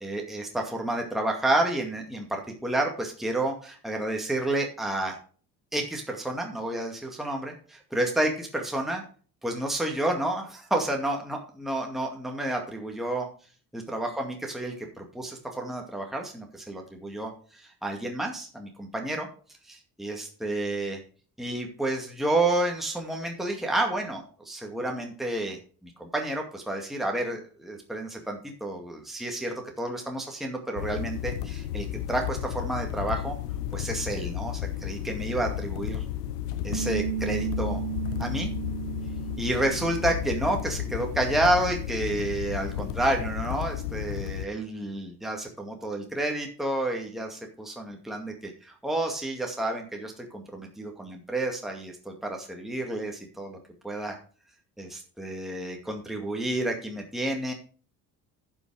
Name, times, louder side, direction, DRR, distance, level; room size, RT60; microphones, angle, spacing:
voice 1, 0.0-5.2 5.7-9.0 9.4-13.3 13.7-19.3 19.6-21.0 21.4-33.4 33.7-36.0 36.6-37.8 38.2-38.5 39.4-53.6 53.8-54.2 54.8-57.5, right 1 dB, ahead, 1 dB, 2.2 m, -30 dB
sound 1, 30.8-44.5, left 11 dB, 90° left, 0.7 m, -33 dB
Bass guitar, 36.7-43.0, right 12 dB, 45° right, 2.7 m, -36 dB
10.5 x 6.2 x 4.9 m, 0.42 s
hypercardioid pair, 55°, 46 cm